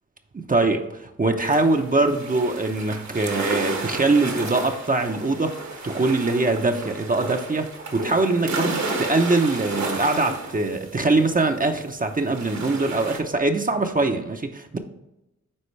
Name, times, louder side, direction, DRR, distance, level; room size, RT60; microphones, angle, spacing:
voice 1, 0.3-5.5 5.8-14.8, right 2 dB, 30° right, 4 dB, 0.7 m, -22 dB
sound 1, 1.4-11.8 12.1-13.2, right 3 dB, 65° right, 1.5 m, -33 dB
9.9 x 3.8 x 3.2 m, 0.92 s
cardioid pair, 55°, 30 cm